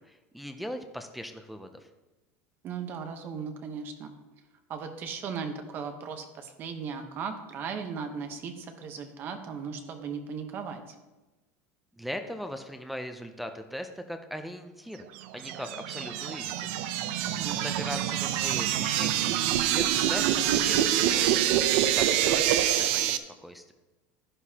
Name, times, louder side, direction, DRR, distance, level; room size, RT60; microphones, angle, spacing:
voice 1, 0.0-1.9 11.9-15.0 15.3-16.8 17.4-19.4 19.7-21.4 22.0-23.7, equal, ahead, 5 dB, 0.4 m, -39 dB
voice 2, 2.6-4.1 4.7-10.9 17.2-17.9, right 6 dB, 30° right, 6 dB, 0.9 m, -37 dB
sound 1, 15.2-23.2, right 11 dB, 55° right, 0.6 m, -26 dB
12.0 x 11.0 x 2.8 m, 1.1 s
cardioid pair, 180°, 7 cm